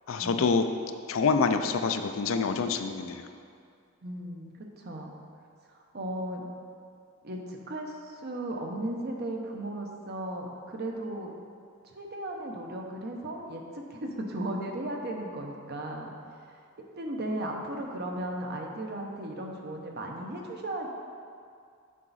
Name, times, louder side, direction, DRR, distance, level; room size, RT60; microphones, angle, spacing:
voice 1, 0.1-0.7 1.1-3.3, left 5 dB, 70° left, 7 dB, 0.4 m, -26 dB
voice 2, 4.0-5.1 5.7-6.5 7.2-11.3 11.9-16.1 17.0-20.9, right 1 dB, 50° right, 1 dB, 0.8 m, -36 dB
7.4 x 5.8 x 4.1 m, 2.3 s
head